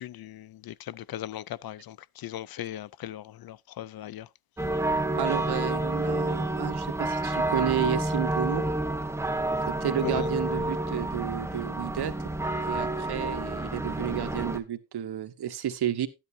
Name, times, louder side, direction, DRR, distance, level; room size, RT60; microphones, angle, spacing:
voice 1, 0.0-4.3 10.0-10.3, left 12 dB, 65° left, 0.5 m, -38 dB
sound 1, 4.6-14.6, right 1 dB, 5° right, 1.0 m, -29 dB
voice 2, 5.2-8.6 9.7-12.1 12.7-16.1, right 10 dB, 75° right, 1.2 m, -31 dB
12.5 x 10.5 x 2.7 m
wide cardioid pair, 130°, 39 cm